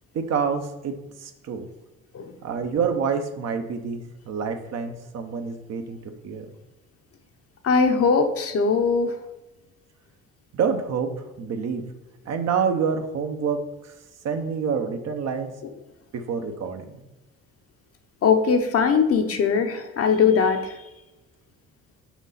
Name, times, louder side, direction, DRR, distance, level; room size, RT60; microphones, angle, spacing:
voice 1, 0.1-1.6 2.4-6.0 6.2-6.5 10.5-11.1 11.4-11.8 12.3-13.9 14.2-15.5 16.1-17.0, right 6 dB, 55° right, 6 dB, 0.8 m, -27 dB
voice 2, 7.6-9.1 18.2-20.8, left 5 dB, 50° left, 6 dB, 0.8 m, -20 dB
6.1 x 4.0 x 4.1 m, 0.97 s
supercardioid pair, 75°, 31 cm